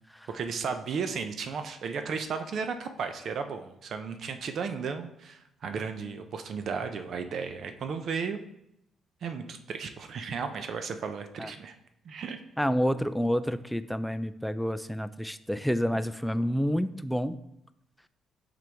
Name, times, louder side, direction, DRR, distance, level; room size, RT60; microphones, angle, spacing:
voice 1, 0.3-8.4 9.2-11.7 12.0-12.4, right 5 dB, 60° right, 8 dB, 0.6 m, -34 dB
voice 2, 12.6-17.4, equal, ahead, 13 dB, 0.3 m, -29 dB
7.4 x 3.9 x 3.4 m, 0.81 s
cardioid pair, 90°, 0 cm